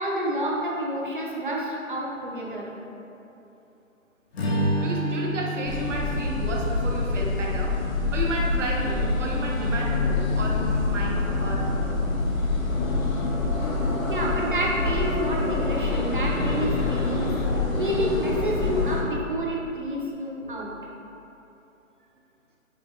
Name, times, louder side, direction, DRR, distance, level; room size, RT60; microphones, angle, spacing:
voice 1, 0.0-2.7 14.1-20.7, equal, 40° right, -3 dB, 0.5 m, -29 dB
Strum, 4.3-8.8, right 1 dB, 50° left, 0.7 m, -31 dB
voice 2, 4.8-7.7 8.1-12.0, right 1 dB, 65° right, -2 dB, 0.9 m, -32 dB
sound 1, 5.7-19.0, left 3 dB, 80° left, 0.9 m, -26 dB
5.0 x 3.4 x 2.6 m, 2.9 s
hypercardioid pair, 170°, 41 cm